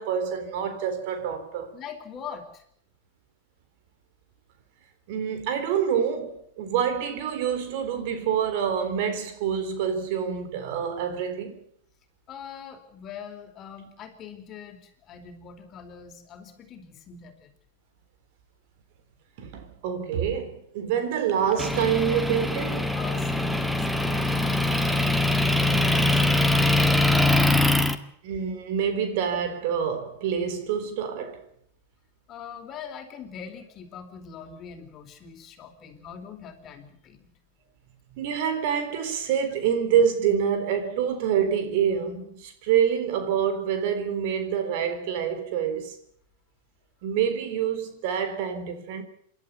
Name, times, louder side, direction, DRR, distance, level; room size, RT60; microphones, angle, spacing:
voice 1, 0.0-1.7 5.1-11.6 19.4-22.9 28.2-31.5 38.2-46.0 47.0-49.0, right 8 dB, 60° right, 3.9 m, -26 dB
voice 2, 1.7-2.6 12.3-17.5 22.9-26.9 32.3-37.3, left 6 dB, 35° left, 4.3 m, -42 dB
Motor vehicle (road) / Engine, 21.6-28.0, left 2 dB, ahead, 1.8 m, -22 dB
27.5 x 12.0 x 9.5 m
hypercardioid pair, 100°, 0 cm